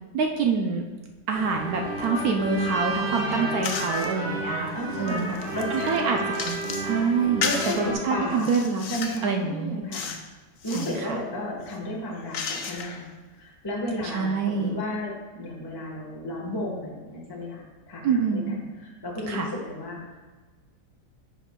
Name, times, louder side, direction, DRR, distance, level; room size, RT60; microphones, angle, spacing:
voice 1, 0.1-0.9 1.3-5.3 5.7-6.2 6.4-8.8 9.2-9.8 10.7-11.2 14.1-14.8 18.0-18.6 19.3-19.5, right 5 dB, 70° right, 2 dB, 0.9 m, -26 dB
sound 1, 1.3-7.9, right 1 dB, 35° right, 1.9 m, -31 dB
voice 2, 3.2-3.6 4.7-6.0 7.4-8.5 8.9-10.1 10.6-13.0 13.3-20.2, left 1 dB, 15° left, -4 dB, 0.9 m, -33 dB
sound 2, 3.6-4.1 4.7-6.9 7.4-7.8 8.3-9.3 9.9-10.3 10.6-11.0 11.6-13.1, left 6 dB, 75° left, 0.7 m, -33 dB
9.8 x 5.3 x 2.2 m, 1.3 s
omnidirectional pair, 2.0 m